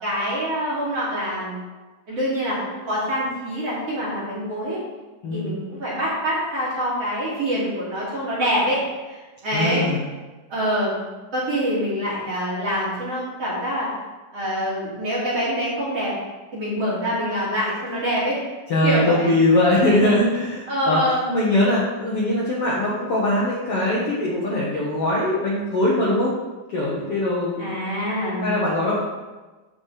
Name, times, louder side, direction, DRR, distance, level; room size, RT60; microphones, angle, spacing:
voice 1, 0.0-1.6 2.1-4.8 5.3-9.9 10.5-11.0 11.3-13.9 14.3-16.1 16.5-18.4 18.8-19.3 20.7-21.2 27.6-28.5, equal, 45° right, -9 dB, 3.8 m, -25 dB
voice 2, 9.5-10.1 18.7-21.0 21.3-26.3 26.7-27.7 28.4-29.0, left 1 dB, 55° left, -6 dB, 1.8 m, -21 dB
14.0 x 5.2 x 3.4 m, 1.2 s
omnidirectional pair, 4.2 m